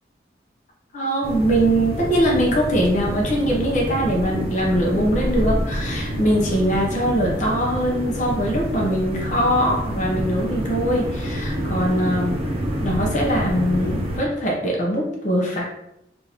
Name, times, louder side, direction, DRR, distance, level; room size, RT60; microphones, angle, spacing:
voice 1, 0.9-12.4 12.8-15.6, equal, 45° left, -2 dB, 0.7 m, -22 dB
sound 1, 1.2-14.2, equal, 35° right, 0.6 m, -27 dB
3.6 x 2.5 x 2.9 m, 0.84 s
head